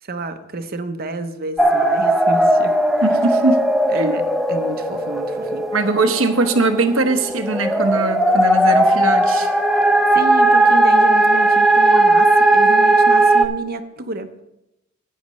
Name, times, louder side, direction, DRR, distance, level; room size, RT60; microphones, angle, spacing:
voice 1, 0.0-2.8 3.9-4.2 4.5-5.6 10.1-14.3, right 2 dB, 45° right, 9 dB, 0.8 m, -29 dB
sound 1, 1.6-13.4, right 1 dB, ahead, 0.6 m, -16 dB
voice 2, 3.0-3.7 3.9-4.2 5.7-9.5, right 3 dB, 75° right, 7 dB, 1.0 m, -20 dB
14.5 x 9.4 x 3.1 m, 0.90 s
head